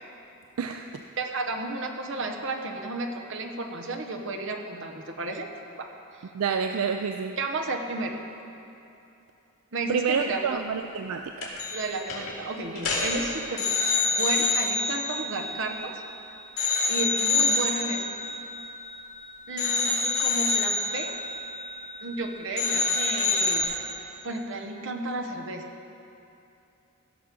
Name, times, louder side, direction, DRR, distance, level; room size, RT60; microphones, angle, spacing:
voice 1, 0.6-0.9 6.3-7.4 9.9-11.5, right 6 dB, 80° right, 6 dB, 0.4 m, -28 dB
voice 2, 1.2-5.5 5.8-5.9 7.4-8.2 9.7-10.6 11.7-13.7 14.1-16.0 16.9-18.2 19.5-21.1 22.0-23.6 24.2-25.7, right 2 dB, 60° right, 3 dB, 0.9 m, -32 dB
sound 1, 11.4-11.8 12.1-12.3 12.8-16.1 16.6-19.2 19.6-22.2 22.6-23.6, left 3 dB, 70° left, 2.4 m, -27 dB
16.0 x 6.1 x 5.2 m, 2.8 s
head